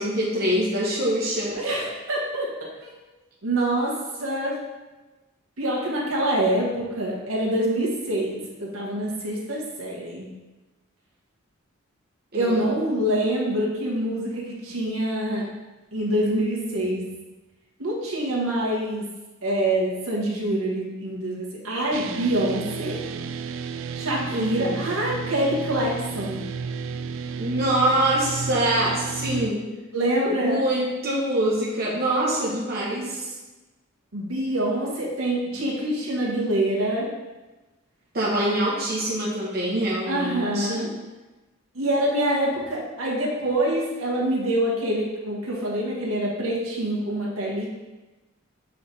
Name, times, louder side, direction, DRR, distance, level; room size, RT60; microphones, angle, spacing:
voice 1, 0.0-1.6 12.3-12.6 24.3-24.8 27.4-29.7 30.3-33.3 38.1-41.0, right 1 dB, 45° right, -5 dB, 0.9 m, -24 dB
voice 2, 1.6-2.5 3.4-3.9 4.2-4.6 5.6-10.3 12.3-15.4 15.9-17.0 17.8-19.1 19.4-23.0 23.9-26.4 29.9-30.6 34.1-37.1 40.1-40.9 41.7-47.7, right 1 dB, 85° right, -3 dB, 1.4 m, -25 dB
sound 1, 21.9-29.5, right 5 dB, 70° right, 0.3 m, -32 dB
6.7 x 3.3 x 4.2 m, 1.2 s
head